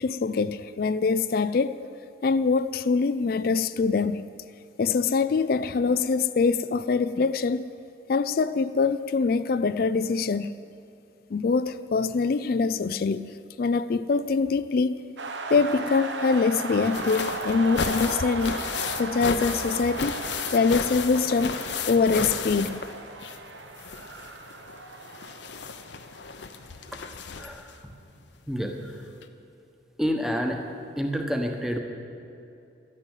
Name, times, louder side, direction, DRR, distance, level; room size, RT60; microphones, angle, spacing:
voice 1, 0.0-1.8 2.2-4.2 4.8-7.7 8.1-10.5 11.3-15.0 15.5-18.6 19.0-20.2 20.5-21.6 21.9-22.7, left 4 dB, 50° left, 0.4 m, -24 dB
sound 1, 15.2-26.9, right 3 dB, 75° right, 1.1 m, -36 dB
sound 2, 16.7-23.5 23.8-27.7 28.8-28.9 29.2-29.3, left 5 dB, 70° left, 0.8 m, -34 dB
voice 2, 27.3-27.8 28.5-29.1 30.0-30.6 31.0-31.8, equal, ahead, 1.1 m, -29 dB
12.0 x 9.8 x 9.0 m
head